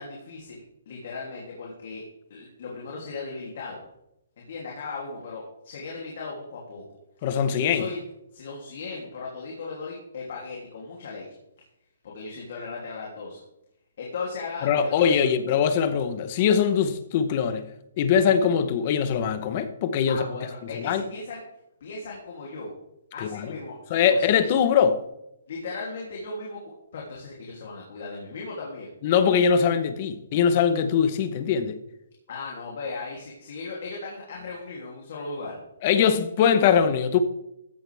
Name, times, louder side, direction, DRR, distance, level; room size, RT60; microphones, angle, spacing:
voice 1, 0.0-2.0 2.3-3.8 4.4-6.8 7.6-8.0 8.3-11.2 12.0-13.4 14.0-15.1 20.1-21.4 21.8-22.7 23.1-24.5 25.5-28.9 29.5-29.7 32.3-35.6, left 3 dB, 45° left, 3.0 m, -37 dB
voice 2, 7.2-7.9 14.6-17.6 18.0-20.2 20.7-21.0 23.2-23.5 23.9-25.0 29.0-31.8 35.8-37.2, left 7 dB, 25° left, 1.0 m, -22 dB
15.0 x 10.5 x 3.5 m
hypercardioid pair, 175°, 0 cm